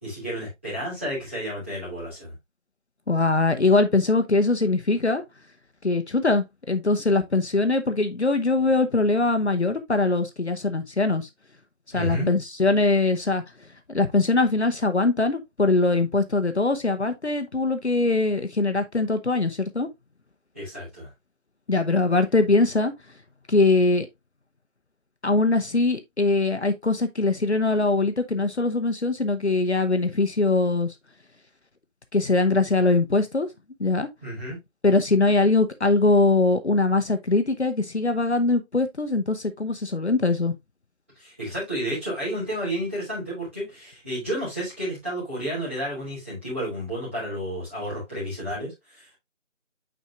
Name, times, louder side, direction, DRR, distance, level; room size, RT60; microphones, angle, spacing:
voice 1, 0.0-2.3 11.9-12.3 20.5-21.1 34.2-34.6 41.1-49.2, equal, 10° right, 2.8 m, -31 dB
voice 2, 3.1-5.2 5.8-11.3 11.9-13.4 13.9-19.9 21.7-22.9 23.5-24.1 25.2-30.9 32.1-33.5 33.8-34.1 34.8-40.5, left 3 dB, 60° left, 0.9 m, -22 dB
9.0 x 4.5 x 2.5 m
figure-of-eight pair, 175°, 38 cm